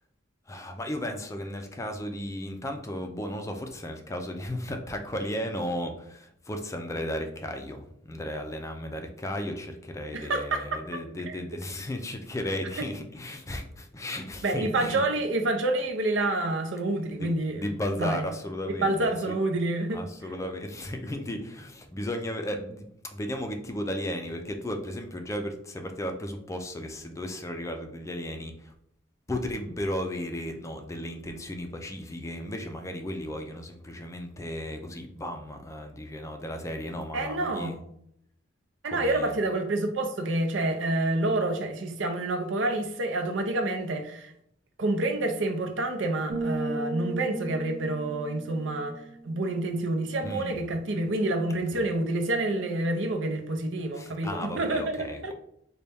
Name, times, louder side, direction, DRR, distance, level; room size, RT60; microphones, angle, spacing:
voice 1, 0.5-15.0 17.2-19.3 19.9-22.9 23.1-28.7 29.3-37.8 38.8-39.4 50.2-50.6 51.7-51.9 53.9-55.3, left 1 dB, 15° left, 0.4 m, -35 dB
voice 2, 10.1-10.7 11.2-11.4 14.4-17.7 18.0-18.2 18.8-20.0 37.1-37.7 38.8-44.3 44.8-55.3, right 2 dB, 75° right, 0.6 m, -28 dB
sound 1, 46.3-50.0, right 2 dB, 35° right, 1.0 m, -35 dB
4.0 x 2.2 x 3.4 m
head